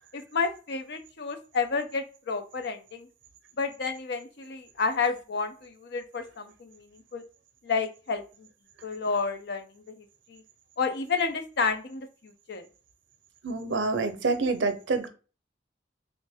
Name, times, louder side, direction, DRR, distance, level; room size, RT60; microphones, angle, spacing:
voice 1, 0.1-3.1 3.6-7.2 7.6-8.5 8.8-10.4 10.8-12.6, left 4 dB, 65° left, 8 dB, 0.6 m, -31 dB
voice 2, 13.4-15.1, right 3 dB, 90° right, 8 dB, 0.6 m, -27 dB
3.2 x 2.6 x 3.4 m, 0.35 s
head